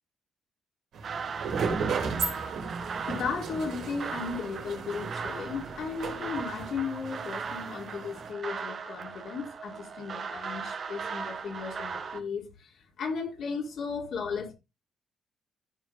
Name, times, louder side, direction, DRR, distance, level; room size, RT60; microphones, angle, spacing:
sound 1, 0.9-8.3, right 5 dB, 70° right, 3.2 m, -36 dB
sound 2, 1.0-12.2, right 5 dB, 50° right, 1.4 m, -38 dB
voice 1, 3.1-14.5, left 5 dB, 70° left, 3.6 m, -35 dB
14.0 x 5.1 x 3.6 m
cardioid pair, 90°, 0 cm